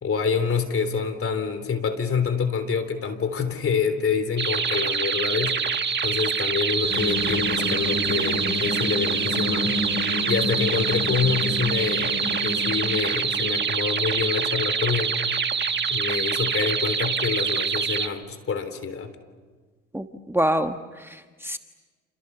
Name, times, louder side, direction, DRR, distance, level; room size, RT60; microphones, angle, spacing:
voice 1, 0.0-5.6 6.0-9.7 10.3-15.1 15.9-19.1, left 6 dB, 45° left, 10 dB, 3.6 m, -26 dB
sound 1, 4.4-18.1, right 6 dB, 35° right, 1.8 m, -25 dB
sound 2, 6.8-13.5, left 2 dB, 65° left, 6.0 m, -30 dB
voice 2, 19.9-21.6, equal, 10° right, 6 dB, 1.4 m, -26 dB
29.0 x 29.0 x 7.0 m, 1.4 s
supercardioid pair, 65°, 30 cm